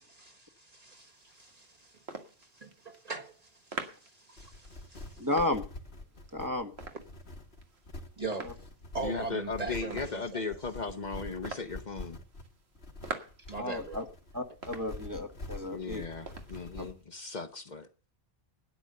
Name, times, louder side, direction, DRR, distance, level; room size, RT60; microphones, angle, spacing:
voice 1, 0.2-2.0 2.5-3.3 3.8-5.3 8.2-8.5 8.9-10.5 13.5-14.0, right 3 dB, 40° right, 1.9 m, -40 dB
sound 1, 0.9-17.0, right 4 dB, 85° right, 1.9 m, -48 dB
sound 2, 4.4-16.9, left 2 dB, 80° left, 2.1 m, -45 dB
voice 2, 5.2-5.7 6.3-6.7 8.4-8.5 13.6-14.0 14.3-16.0 16.8-16.9, left 1 dB, 20° right, 1.2 m, -33 dB
voice 3, 9.0-12.2 15.7-18.1, left 4 dB, 45° left, 1.0 m, -37 dB
12.5 x 9.9 x 6.6 m
omnidirectional pair, 1.1 m